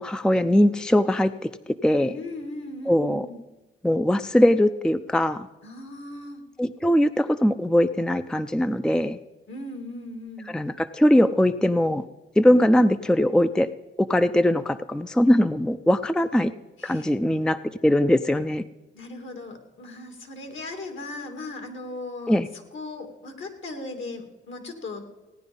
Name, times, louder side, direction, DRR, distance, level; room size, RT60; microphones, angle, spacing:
voice 1, 0.0-1.5 1.8-2.1 2.9-3.3 3.8-5.5 6.6-9.2 10.5-12.1 12.4-13.7 14.0-16.5 16.8-18.6 22.3-22.5, left 1 dB, 5° left, 11 dB, 0.5 m, -21 dB
voice 2, 2.1-3.4 5.6-6.4 9.5-10.5 16.8-17.2 18.9-25.0, left 2 dB, 65° left, 5 dB, 2.7 m, -38 dB
17.0 x 9.8 x 5.5 m, 1.1 s
cardioid pair, 70°, 21 cm